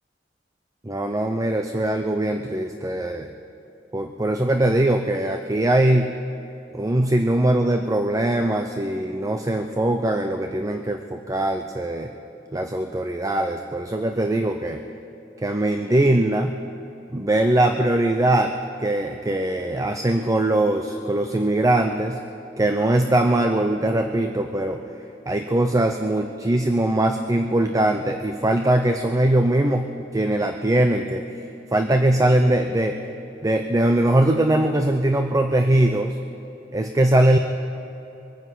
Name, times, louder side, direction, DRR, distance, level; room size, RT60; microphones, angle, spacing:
voice 1, 0.8-3.3 3.9-6.2 6.7-12.1 12.5-14.8 15.4-16.6 17.1-18.5 18.8-22.2 22.6-24.8 25.3-31.2 31.7-33.0 33.4-36.2 36.7-37.4, right 1 dB, 20° right, 5 dB, 0.6 m, -21 dB
23.0 x 9.6 x 5.8 m, 3.0 s
head